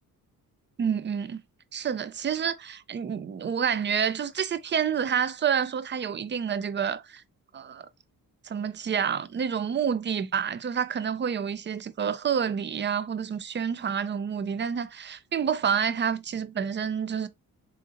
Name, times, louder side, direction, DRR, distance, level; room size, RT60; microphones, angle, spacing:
voice 1, 0.8-1.4 1.7-7.2 7.5-7.8 8.4-17.3, right 7 dB, 30° right, 0.4 m, -28 dB
3.7 x 2.9 x 2.4 m
cardioid pair, 85°, 37 cm